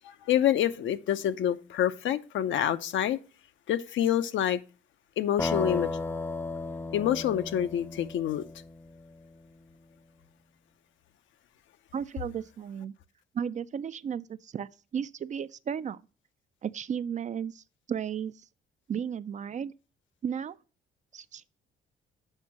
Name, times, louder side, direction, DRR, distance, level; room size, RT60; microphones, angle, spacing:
voice 1, 0.0-3.2 3.7-4.6 5.2-5.9 6.9-8.4, left 10 dB, 75° left, 0.7 m, -27 dB
sound 1, 5.4-9.2, left 3 dB, 10° left, 0.7 m, -34 dB
voice 2, 11.9-12.9 13.3-16.0 16.6-18.3 18.9-19.7 20.2-20.6 21.1-21.4, right 8 dB, 40° right, 0.4 m, -34 dB
6.6 x 5.3 x 5.9 m
cardioid pair, 90°, 20 cm